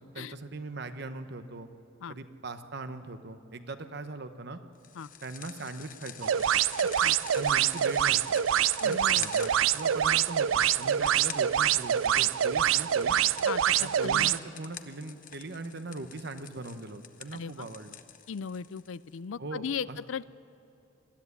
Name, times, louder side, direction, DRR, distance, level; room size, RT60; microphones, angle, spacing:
voice 1, 0.1-1.7 2.1-4.6 5.2-6.3 7.3-8.4 8.8-13.2 13.8-17.9 19.4-20.0, right 3 dB, 55° right, 9 dB, 1.0 m, -40 dB
sound 1, 4.8-19.2, left 9 dB, 40° left, 0.8 m, -47 dB
sound 2, 6.2-14.4, right 10 dB, 80° right, 0.4 m, -25 dB
voice 2, 8.8-9.3 11.0-11.1 13.4-14.3 17.3-17.7 18.3-20.2, left 6 dB, 75° left, 18 dB, 0.4 m, -37 dB
20.5 x 13.5 x 9.7 m, 2.7 s
head